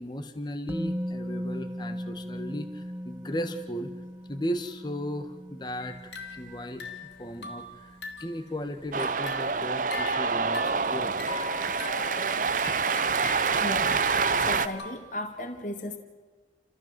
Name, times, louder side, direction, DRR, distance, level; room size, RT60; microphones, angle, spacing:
voice 1, 0.0-3.9 4.3-6.0 6.3-6.8 7.2-11.2, equal, 25° left, 7 dB, 1.6 m, -36 dB
Musical instrument, 0.7-8.6 8.9-9.0, equal, 15° right, 0.6 m, -39 dB
sound 1, 5.8-8.4 8.8-15.0, left 4 dB, 80° left, 2.7 m, -41 dB
Cheering, 8.9-14.7, right 5 dB, 45° right, 0.7 m, -27 dB
voice 2, 13.6-14.0 14.4-16.0, left 1 dB, 45° left, 4 dB, 2.2 m, -35 dB
29.5 x 15.0 x 7.7 m, 1.4 s
head